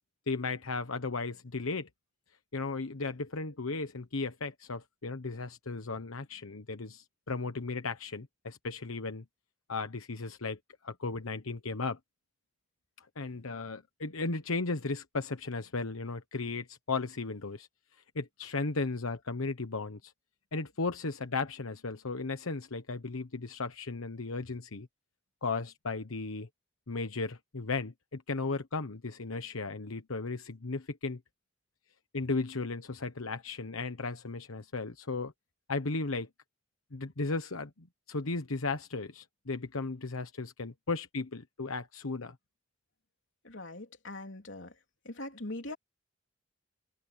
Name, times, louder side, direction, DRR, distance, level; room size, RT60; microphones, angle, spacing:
voice 1, 0.3-1.9 2.5-9.2 9.7-10.6 10.8-12.0 13.0-17.7 18.1-20.1 20.5-24.9 25.4-26.5 26.9-31.2 32.1-35.3 35.7-36.3 36.9-42.3, left 3 dB, 90° left, 1.2 m, -35 dB
voice 2, 43.4-44.7 45.1-45.8, left 2 dB, 60° left, 3.7 m, -41 dB
head